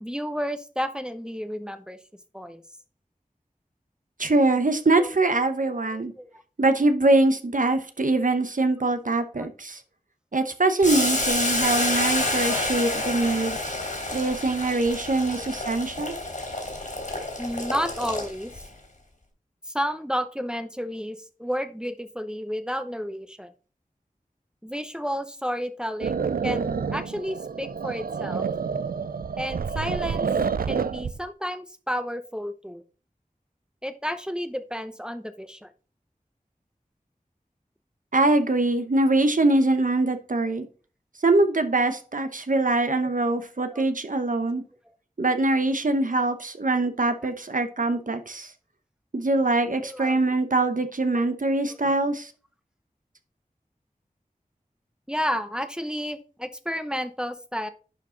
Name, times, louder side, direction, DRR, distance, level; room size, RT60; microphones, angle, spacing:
voice 1, 0.0-2.0 2.3-2.6 5.0-5.1 5.9-6.4 8.2-8.3 9.4-9.5 12.2-12.6 15.3-15.5 17.4-18.5 19.7-23.5 24.6-28.4 29.4-30.3 30.7-32.8 33.8-35.7 43.2-43.4 43.7-43.9 47.3-47.4 49.8-50.2 51.1-51.2 51.7-51.8 55.1-57.7, equal, 5° right, 9 dB, 0.8 m, -32 dB
voice 2, 4.2-6.1 6.6-9.8 10.3-13.6 14.1-16.2 38.1-40.7 41.2-44.6 45.2-48.5 49.1-52.3, right 2 dB, 65° right, 9 dB, 1.0 m, -23 dB
Boiling, 10.8-18.6, left 1 dB, 65° left, 3.4 m, -28 dB
sound 1, 26.0-31.2, right 6 dB, 80° right, 0.4 m, -28 dB
11.0 x 4.9 x 3.9 m, 0.38 s
wide cardioid pair, 45°, 15 cm